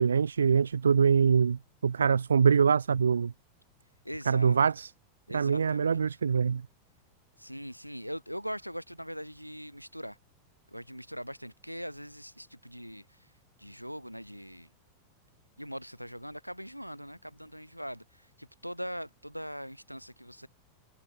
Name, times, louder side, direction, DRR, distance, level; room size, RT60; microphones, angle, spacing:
voice 1, 0.0-3.3 4.3-4.9 5.3-6.6, right 6 dB, 70° right, 0.4 m, -24 dB
voice 2, 4.0-4.6 5.3-6.0 7.4-10.2 10.7-13.3 13.6-14.7 15.6-20.5, equal, 90° right, 3.9 m, -41 dB
figure-of-eight pair, 90°, 0 cm